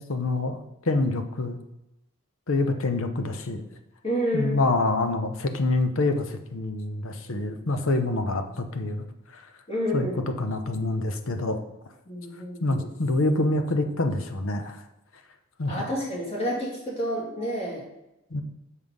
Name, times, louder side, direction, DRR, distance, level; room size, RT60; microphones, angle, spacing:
voice 1, 0.0-1.6 2.5-3.7 4.3-9.4 9.9-10.1 10.4-11.6 12.6-14.8 15.6-15.8 18.3-18.4, left 2 dB, 65° left, 7 dB, 0.8 m, -26 dB
voice 2, 4.0-4.6 9.7-10.2 12.1-12.9 15.7-17.9, equal, 30° left, -4 dB, 2.4 m, -29 dB
6.5 x 5.5 x 5.4 m, 0.90 s
head